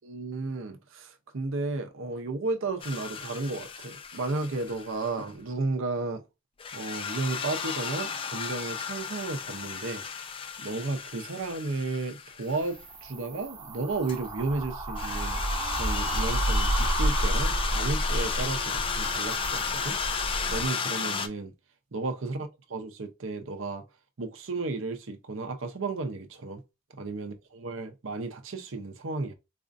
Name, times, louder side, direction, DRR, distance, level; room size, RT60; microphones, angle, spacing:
voice 1, 0.0-6.2 6.7-10.0 10.6-15.4 15.8-20.0 20.5-21.5 21.9-23.8 24.2-26.6 26.9-29.3, right 3 dB, 65° right, 0.7 m, -33 dB
sound 1, 2.8-5.3 6.6-12.7 14.1-14.2 15.0-21.3, left 6 dB, 25° left, 0.3 m, -34 dB
sound 2, 12.5-20.7, right 1 dB, 25° right, 0.8 m, -30 dB
4.2 x 2.5 x 2.5 m
head